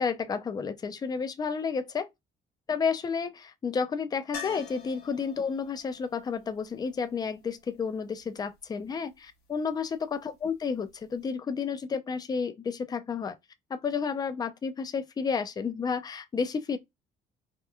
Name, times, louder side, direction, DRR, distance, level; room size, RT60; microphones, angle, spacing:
voice 1, 0.0-2.1 2.7-13.4 13.7-16.8, left 5 dB, 25° left, 0.4 m, -31 dB
sound 1, 4.3-8.2 10.9-11.0 11.2-11.3, left 6 dB, 70° left, 1.1 m, -46 dB
2.8 x 2.2 x 2.3 m
cardioid pair, 110°, 17 cm